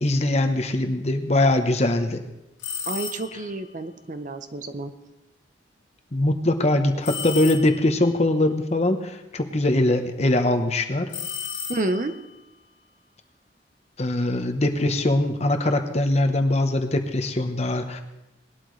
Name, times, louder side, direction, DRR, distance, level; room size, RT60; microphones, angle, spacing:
voice 1, 0.0-2.2 6.1-11.1 14.0-18.0, left 1 dB, 35° left, 6 dB, 0.9 m, -22 dB
Ring Bell, 2.6-3.5 7.0-8.0 11.1-12.2, left 7 dB, 80° left, 1.8 m, -33 dB
voice 2, 2.9-4.9 11.7-12.1, right 2 dB, 40° right, 9 dB, 0.7 m, -29 dB
19.5 x 12.0 x 3.2 m, 0.98 s
head